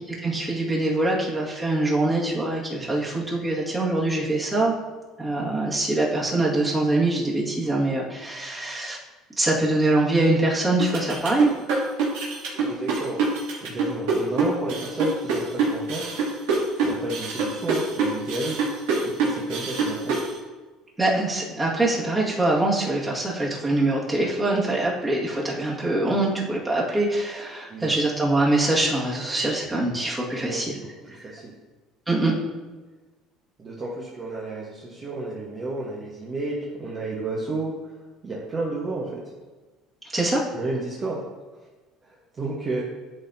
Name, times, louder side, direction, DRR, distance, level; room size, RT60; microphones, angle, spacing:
voice 1, 0.2-4.8 5.2-9.0 9.4-11.5 21.0-30.8 31.1-31.2 32.1-32.3 40.1-40.4, right 2 dB, 15° right, -4 dB, 1.9 m, -24 dB
sound 1, 10.8-20.3, right 4 dB, 90° right, 2.1 m, -25 dB
voice 2, 12.5-13.2 13.6-16.1 16.8-18.6 19.0-20.2 27.7-27.9 30.3-30.6 31.0-31.5 33.6-37.9 38.2-39.2 40.5-41.2 42.0-42.8, right 2 dB, 30° right, -4 dB, 1.2 m, -31 dB
11.0 x 4.3 x 2.7 m, 1.3 s
cardioid pair, 110°, 0 cm